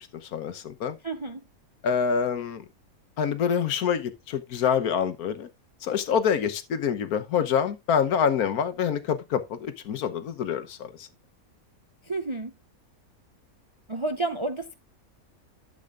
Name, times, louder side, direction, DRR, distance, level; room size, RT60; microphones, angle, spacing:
voice 1, 0.3-1.0 1.8-2.6 3.2-5.5 5.8-11.1, left 7 dB, 90° left, 1.5 m, -26 dB
voice 2, 1.0-1.4 12.0-12.5 13.9-14.7, right 2 dB, 40° right, 0.4 m, -30 dB
12.0 x 7.9 x 2.5 m
omnidirectional pair, 1.5 m